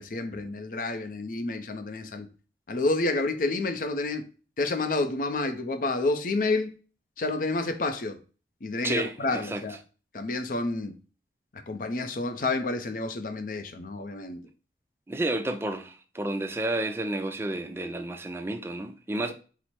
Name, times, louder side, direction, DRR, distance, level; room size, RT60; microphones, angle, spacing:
voice 1, 0.0-2.3 2.7-4.3 4.6-6.7 7.2-8.2 8.6-9.8 10.1-10.9 11.7-14.4, left 2 dB, 50° left, 0.5 m, -29 dB
voice 2, 8.8-9.6 15.1-19.3, right 2 dB, 15° right, 0.3 m, -31 dB
4.6 x 2.0 x 4.2 m
head